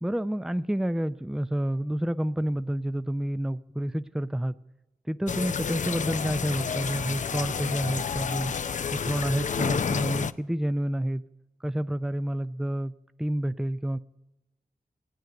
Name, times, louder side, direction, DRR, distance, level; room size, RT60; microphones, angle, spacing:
voice 1, 0.0-4.5 5.1-8.5 8.9-11.2 11.6-12.9 13.2-14.0, right 1 dB, 5° right, 13 dB, 0.5 m, -29 dB
sound 1, 5.3-10.3, left 6 dB, 60° left, 0.5 m, -30 dB
15.0 x 9.1 x 7.8 m, 1.0 s
cardioid pair, 40°, 14 cm